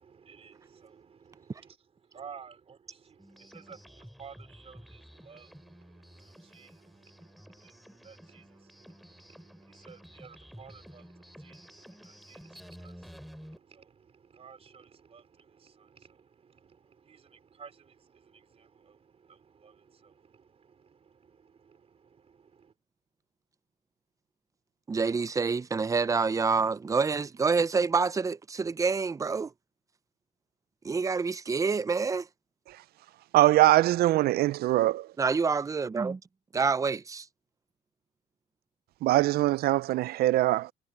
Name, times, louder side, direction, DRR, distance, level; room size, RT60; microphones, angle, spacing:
voice 1, 0.0-1.8 2.0-22.7, right 6 dB, 35° right, 4.0 m, -54 dB
sound 1, 3.2-13.6, equal, ahead, 3.1 m, -51 dB
voice 2, 24.9-29.5 30.8-32.3 35.2-36.2 36.5-37.3, right 4 dB, 20° right, 0.6 m, -27 dB
voice 3, 33.3-35.1 39.0-40.7, right 16 dB, 65° right, 0.5 m, -22 dB
cardioid pair, 110°, 17 cm